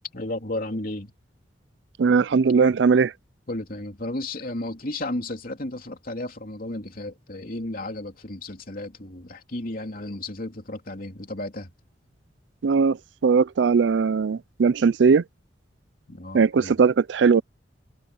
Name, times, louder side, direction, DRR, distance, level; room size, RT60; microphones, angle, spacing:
voice 1, 0.1-1.1 3.5-11.7 16.1-16.7, left 1 dB, 50° left, 3.1 m, -33 dB
voice 2, 2.0-3.1 12.6-15.2 16.3-17.4, right 5 dB, 75° right, 0.4 m, -19 dB
head